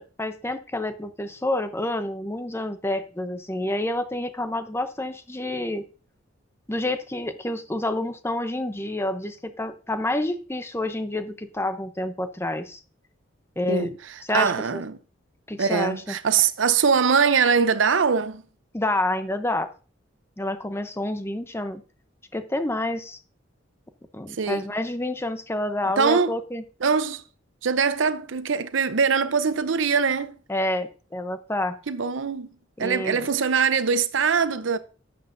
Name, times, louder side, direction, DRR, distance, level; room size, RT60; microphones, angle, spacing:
voice 1, 0.0-5.8 6.7-12.8 13.6-13.9 14.3-14.8 15.5-16.1 18.7-19.7 20.4-21.8 22.3-23.2 24.1-26.6 30.5-31.8 32.8-33.3, left 1 dB, 15° left, 0.7 m, -28 dB
voice 2, 13.7-15.0 15.6-18.4 24.3-24.7 26.0-26.4 26.8-27.2 27.6-30.4 31.9-32.5 32.8-34.8, right 5 dB, 85° right, 0.7 m, -22 dB
11.0 x 7.8 x 2.6 m
head